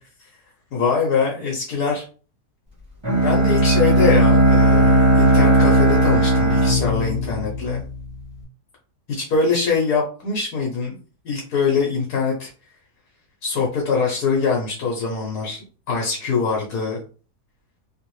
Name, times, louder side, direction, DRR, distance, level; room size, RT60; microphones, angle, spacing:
voice 1, 0.7-2.0 3.2-7.8 9.2-11.0 11.2-12.5 13.4-17.0, left 4 dB, 70° left, -1 dB, 1.5 m, -23 dB
Bowed string instrument, 3.0-8.0, right 1 dB, 15° right, 1.4 m, -16 dB
3.4 x 3.0 x 3.1 m, 0.38 s
omnidirectional pair, 1.8 m